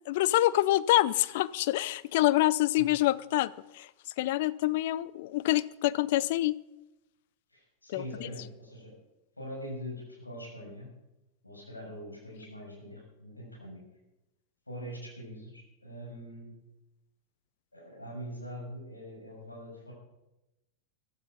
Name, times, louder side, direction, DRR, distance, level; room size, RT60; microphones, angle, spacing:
voice 1, 0.1-3.9 4.2-6.6 7.9-8.3, left 16 dB, 50° left, 19 dB, 0.5 m, -26 dB
voice 2, 7.5-8.9 9.4-10.9 11.4-13.8 14.7-16.5 17.7-19.9, equal, 85° left, -2 dB, 6.7 m, -43 dB
15.5 x 13.0 x 5.5 m, 0.95 s
figure-of-eight pair, 90°, 0 cm